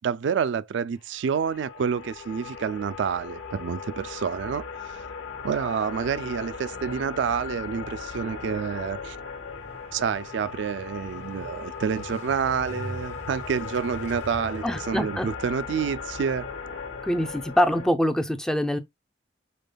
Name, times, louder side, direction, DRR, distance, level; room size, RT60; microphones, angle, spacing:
voice 1, 0.0-5.0 5.4-9.2 9.9-16.5, right 6 dB, 70° right, 0.3 m, -28 dB
sound 1, 1.1-17.9, left 5 dB, 75° left, 1.0 m, -38 dB
Motorcycle, 9.5-16.2, equal, 40° left, 1.3 m, -43 dB
voice 2, 14.6-15.3 17.0-18.8, equal, 5° left, 0.4 m, -24 dB
5.2 x 4.1 x 2.2 m
head